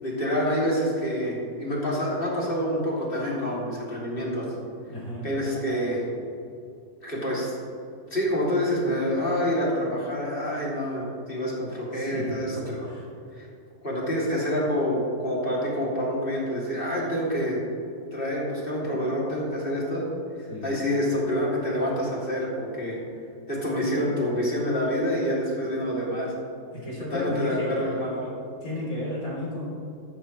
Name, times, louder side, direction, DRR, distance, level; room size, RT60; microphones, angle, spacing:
voice 1, 0.0-4.5 5.2-6.0 7.0-7.5 8.1-12.9 13.3-13.5 13.8-17.6 18.1-20.1 20.6-23.0 23.5-26.3 27.1-28.3, equal, 30° left, -5 dB, 3.0 m, -27 dB
voice 2, 4.9-5.3 11.9-12.4 12.8-13.1 20.5-20.8 26.7-27.9 28.6-29.7, left 1 dB, 45° left, -6 dB, 3.9 m, -33 dB
13.5 x 12.0 x 3.2 m, 2.5 s
omnidirectional pair, 2.0 m